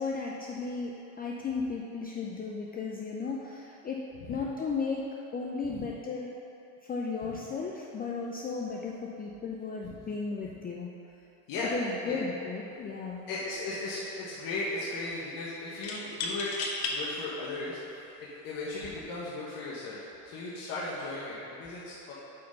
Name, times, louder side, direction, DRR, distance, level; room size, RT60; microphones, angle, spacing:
voice 1, 0.0-6.4 6.8-10.9 11.7-13.3, left 4 dB, 20° left, -2 dB, 0.5 m, -35 dB
sound 1, 12.7-12.9 13.3-13.9 15.8-17.0 17.7-17.8 18.7-19.0, left 4 dB, 65° left, 1.3 m, -35 dB
voice 2, 13.3-16.5 16.8-22.1, left 2 dB, 50° left, -7 dB, 1.5 m, -37 dB
8.5 x 4.3 x 5.3 m, 2.8 s
supercardioid pair, 105°, 43 cm